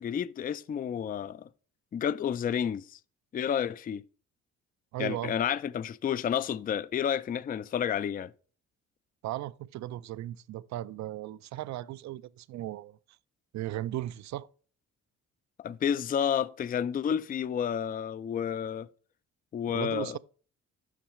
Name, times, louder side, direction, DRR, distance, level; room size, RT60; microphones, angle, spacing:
voice 1, 0.0-1.5 1.9-3.0 3.3-4.0 5.0-8.3 15.6-18.9 19.5-20.2, left 8 dB, 30° left, 0.4 m, -30 dB
voice 2, 4.9-5.3 9.2-13.0 13.5-14.5 19.7-20.2, right 14 dB, 65° right, 0.5 m, -36 dB
6.3 x 5.9 x 6.2 m
cardioid pair, 90°, 30 cm